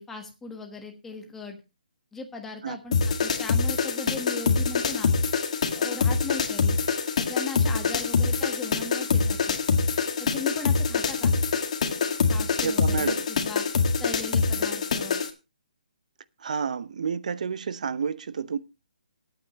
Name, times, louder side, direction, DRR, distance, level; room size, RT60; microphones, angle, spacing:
voice 1, 0.0-1.6 2.1-5.1 5.7-6.8 7.2-9.6 10.2-11.4 12.3-13.6 14.0-15.2, left 4 dB, 5° left, 1.4 m, -38 dB
sound 1, 2.9-15.3, left 5 dB, 50° left, 2.0 m, -25 dB
voice 2, 12.6-13.2 16.4-18.6, right 6 dB, 55° right, 0.8 m, -30 dB
20.5 x 8.9 x 3.0 m
hypercardioid pair, 165°, 5 cm